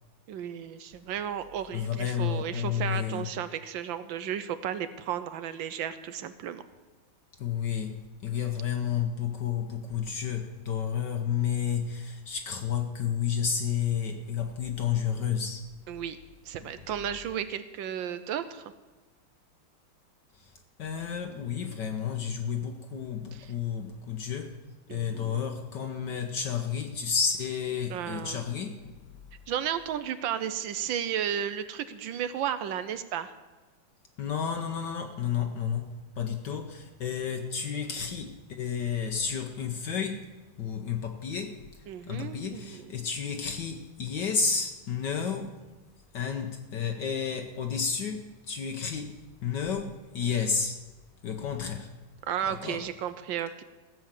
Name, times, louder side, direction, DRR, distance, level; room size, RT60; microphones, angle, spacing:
voice 1, 0.3-6.6 15.9-16.2 16.5-18.7 23.3-23.5 24.9-25.4 27.9-28.5 29.5-33.3 41.9-42.9 52.3-53.6, right 9 dB, 70° right, 12 dB, 1.3 m, -34 dB
voice 2, 1.7-3.3 7.4-8.0 8.2-15.7 16.6-16.7 20.4-20.5 20.8-24.6 24.9-29.1 34.2-40.3 40.6-41.6 42.1-45.6 46.1-50.8 51.2-51.9 52.4-52.8, left 7 dB, 60° left, 5 dB, 1.4 m, -31 dB
15.5 x 7.2 x 7.4 m, 1.2 s
omnidirectional pair, 2.3 m